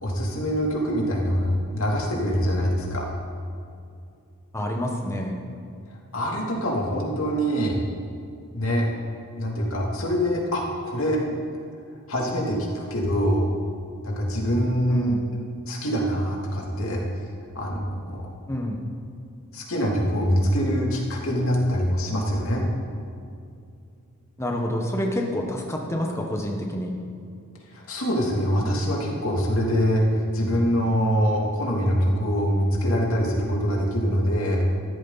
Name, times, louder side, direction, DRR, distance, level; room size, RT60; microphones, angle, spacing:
voice 1, 0.0-3.1 6.1-7.8 8.5-8.9 9.4-11.2 12.1-13.4 14.0-15.2 15.7-17.0 17.5-18.2 19.5-22.6 27.7-34.6, equal, 70° left, -2 dB, 2.9 m, -24 dB
voice 2, 4.5-5.4 14.9-15.2 18.5-18.8 24.4-26.9, left 1 dB, 10° left, 1 dB, 1.3 m, -28 dB
15.0 x 14.0 x 4.1 m, 2.5 s
head